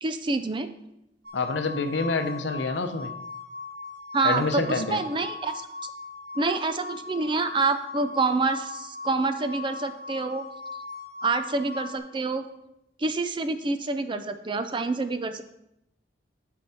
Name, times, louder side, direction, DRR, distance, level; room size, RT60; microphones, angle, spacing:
voice 1, 0.0-0.7 4.1-5.7 6.4-10.4 11.2-12.5 13.0-15.4, right 3 dB, 25° right, 9 dB, 0.4 m, -27 dB
sound 1, 1.2-12.0, left 4 dB, 60° right, 1.3 m, -39 dB
voice 2, 1.3-3.1 4.2-5.0, left 3 dB, 70° left, 7 dB, 0.7 m, -27 dB
11.0 x 4.6 x 4.3 m, 0.83 s
head